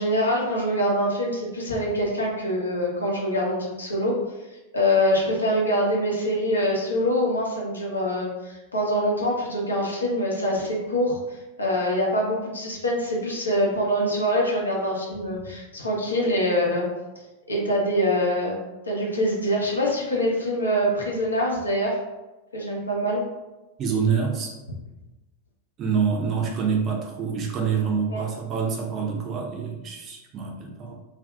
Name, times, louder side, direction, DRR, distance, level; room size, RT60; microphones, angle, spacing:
voice 1, 0.0-4.2 4.7-16.8 17.5-18.6 18.8-22.0 22.5-23.2 28.1-28.3, equal, 75° left, -3 dB, 0.6 m, -24 dB
voice 2, 23.8-24.6 25.8-30.9, right 6 dB, 30° right, 1 dB, 0.5 m, -26 dB
2.5 x 2.2 x 2.3 m, 1.1 s
figure-of-eight pair, 90°, 0 cm